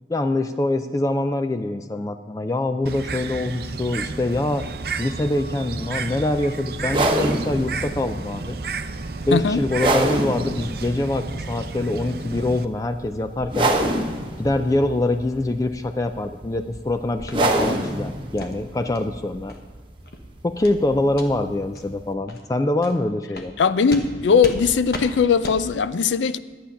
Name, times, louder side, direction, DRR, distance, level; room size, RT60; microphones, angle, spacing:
voice 1, 0.1-4.7 5.0-8.6 9.3-13.7 14.4-19.5 20.4-23.5, left 2 dB, 20° left, 8 dB, 0.3 m, -24 dB
Bird, 2.9-12.7, right 4 dB, 55° right, 0.5 m, -32 dB
sound 1, 6.8-22.1, right 1 dB, 25° right, 1.0 m, -28 dB
voice 2, 9.3-9.6 23.6-26.4, left 6 dB, 90° left, 14 dB, 0.5 m, -19 dB
sound 2, 17.3-17.4 17.8-18.0 18.4-18.5 18.9-19.0 19.5-19.6 20.0-20.2 20.6-20.8 21.1-21.3 21.7-21.8 22.3-22.4 22.8-22.9 23.3-23.5 23.9-24.1 24.4-24.6 24.9-25.1 25.4-25.6, left 2 dB, 55° left, 1.2 m, -34 dB
11.5 x 8.5 x 5.7 m, 1.5 s
head